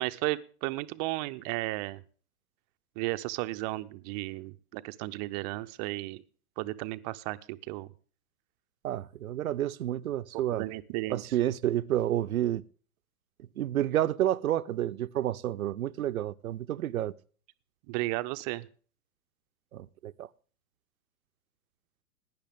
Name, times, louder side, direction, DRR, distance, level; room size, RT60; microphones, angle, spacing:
voice 1, 0.0-2.0 3.0-6.2 6.6-7.9 10.5-11.2 17.9-18.7, right 20 dB, 30° right, 0.6 m, -34 dB
voice 2, 8.8-10.6 11.1-12.6 13.6-17.1 19.7-20.3, right 12 dB, 70° right, 0.7 m, -30 dB
18.0 x 10.0 x 3.5 m
hypercardioid pair, 110°, 44 cm